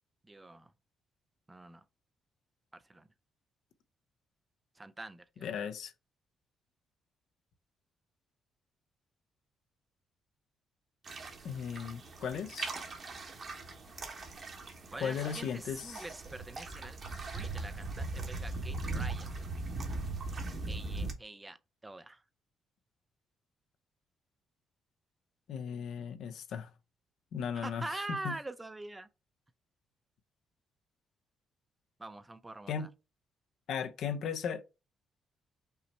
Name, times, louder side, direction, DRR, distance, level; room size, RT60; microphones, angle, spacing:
voice 1, 0.2-0.7 1.5-1.8 2.7-3.1 4.8-5.4 14.9-19.4 20.7-21.6 21.8-22.2 27.5-29.1 32.0-32.9, right 2 dB, 15° right, 0.5 m, -44 dB
voice 2, 5.4-5.9 11.4-12.7 15.0-16.0 25.5-26.7 27.3-28.3 32.7-32.9 33.7-34.6, left 7 dB, 75° left, 0.7 m, -36 dB
sound 1, 11.0-21.1, right 3 dB, 45° right, 1.3 m, -40 dB
5.6 x 2.1 x 4.2 m
cardioid pair, 90°, 0 cm